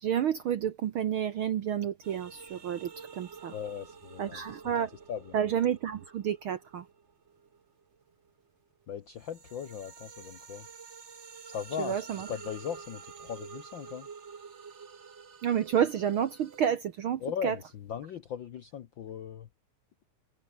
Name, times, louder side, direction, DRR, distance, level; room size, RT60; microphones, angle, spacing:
voice 1, 0.0-3.5 4.2-4.9 5.3-6.9 11.8-12.3 15.4-17.6, right 9 dB, 65° right, 1.4 m, -30 dB
sound 1, 2.0-8.4 8.8-16.7, right 6 dB, 45° right, 0.8 m, -49 dB
voice 2, 3.5-4.7 5.1-5.4 8.9-10.7 11.4-14.1 17.2-19.5, left 8 dB, 65° left, 1.1 m, -39 dB
omnidirectional pair, 3.4 m